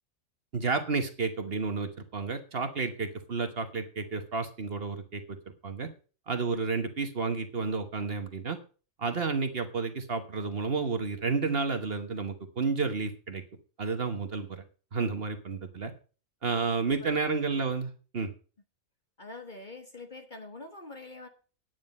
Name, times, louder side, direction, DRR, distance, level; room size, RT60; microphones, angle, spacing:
voice 1, 0.5-5.4 5.6-5.9 6.3-8.6 9.0-13.4 13.8-14.6 14.9-15.9 16.4-18.3, right 4 dB, 45° right, 7 dB, 1.3 m, -31 dB
voice 2, 19.2-21.3, left 2 dB, 35° left, 6 dB, 1.1 m, -45 dB
9.7 x 9.4 x 5.3 m, 0.37 s
omnidirectional pair, 1.5 m